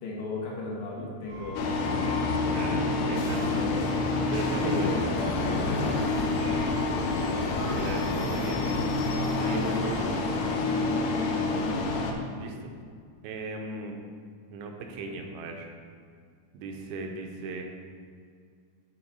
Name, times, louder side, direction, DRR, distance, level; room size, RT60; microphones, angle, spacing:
voice 1, 0.0-2.2 2.5-2.9 3.4-4.0 4.6-5.1 5.4-6.5 9.6-9.8 10.8-11.2, left 3 dB, 70° left, -3 dB, 2.7 m, -36 dB
sound 1, 1.3-12.2, left 1 dB, 55° left, 2.6 m, -41 dB
sound 2, 1.5-12.1, left 3 dB, 90° left, 1.7 m, -28 dB
voice 2, 2.5-3.6 4.3-5.0 7.1-7.5 7.8-8.6 9.2-10.1 12.3-12.7 13.2-14.0 14.5-15.7 16.5-17.6, right 3 dB, 85° right, 3 dB, 2.5 m, -37 dB
sound 3, 3.2-10.0, right 1 dB, 60° right, 1.4 m, -43 dB
8.8 x 3.7 x 4.1 m, 2.1 s
omnidirectional pair, 4.4 m